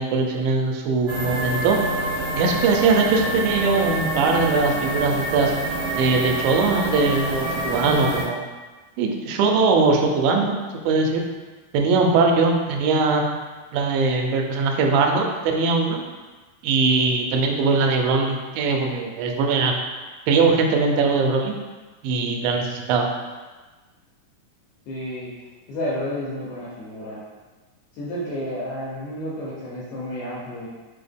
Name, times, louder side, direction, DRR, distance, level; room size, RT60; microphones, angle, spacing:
voice 1, 0.0-1.8 2.3-5.5 6.0-8.4 9.0-10.6 10.8-11.2 11.7-13.2 13.7-16.0 16.6-19.7 20.3-21.5 22.0-23.1, right 4 dB, 90° right, 2 dB, 2.3 m, -21 dB
sound 1, 1.1-8.2, right 1 dB, 60° right, 1.7 m, -27 dB
voice 2, 24.9-25.3 25.7-27.2 27.9-30.7, equal, 80° left, -8 dB, 1.7 m, -31 dB
5.3 x 2.1 x 3.4 m, 1.3 s
omnidirectional pair, 4.0 m